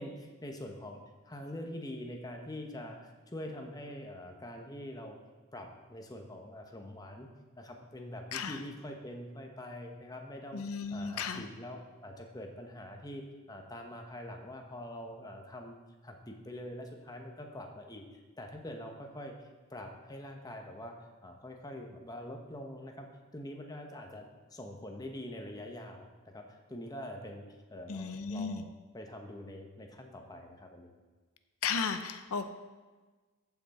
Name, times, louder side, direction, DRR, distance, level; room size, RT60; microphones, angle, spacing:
voice 1, 0.0-5.2 5.5-7.3 7.6-10.6 10.9-18.1 18.4-19.3 19.7-23.1 23.3-30.9, left 1 dB, 15° left, 3 dB, 1.0 m, -44 dB
voice 2, 10.5-11.4 27.9-28.6 31.6-32.5, left 5 dB, 85° left, 9 dB, 0.6 m, -34 dB
14.5 x 6.0 x 4.3 m, 1.3 s
head